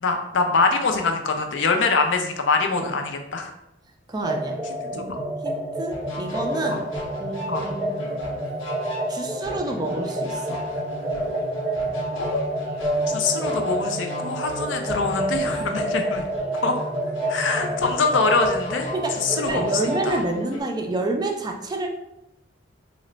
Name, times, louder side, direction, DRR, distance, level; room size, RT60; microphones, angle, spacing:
voice 1, 0.0-3.5 4.9-5.2 6.7-6.8 7.5-7.6 12.2-12.4 13.1-16.2 16.6-16.8 17.3-18.9 19.2-19.7 20.1-20.2, left 4 dB, 70° left, 4 dB, 0.5 m, -24 dB
voice 2, 4.1-4.6 4.9-5.1 5.4-6.8 7.2-7.9 9.1-10.6 18.9-21.9, right 2 dB, 20° right, 2 dB, 0.3 m, -28 dB
sound 1, 4.2-20.1, right 1 dB, 5° right, 0.7 m, -29 dB
sound 2, 5.9-20.6, equal, 85° left, 0.9 m, -36 dB
3.1 x 2.1 x 3.8 m, 0.86 s
head